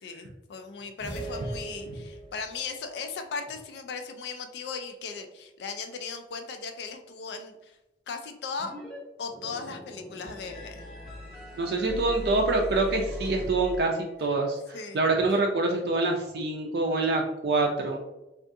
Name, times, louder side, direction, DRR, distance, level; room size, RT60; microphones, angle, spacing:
voice 1, 0.0-7.8 8.1-8.7 9.2-10.9 14.7-15.0, left 5 dB, 70° left, 6 dB, 0.3 m, -37 dB
sound 1, 1.0-2.5, right 2 dB, 90° left, 1.2 m, -38 dB
sound 2, 8.6-9.0 9.2-14.2, equal, ahead, 0.8 m, -40 dB
voice 2, 11.6-18.0, right 3 dB, 60° right, 1 dB, 0.4 m, -26 dB
3.5 x 2.4 x 2.6 m, 0.97 s
head